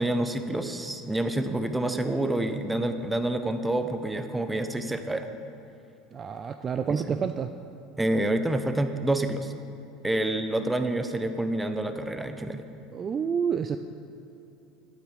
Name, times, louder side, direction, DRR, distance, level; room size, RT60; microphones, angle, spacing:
voice 1, 0.0-5.3 6.9-7.0 8.0-9.5 10.0-12.6, right 1 dB, 10° right, 8 dB, 0.8 m, -28 dB
voice 2, 6.1-7.5 12.9-13.8, right 7 dB, 35° right, 9 dB, 0.4 m, -29 dB
11.5 x 8.8 x 4.8 m, 3.0 s
supercardioid pair, 95°, 0 cm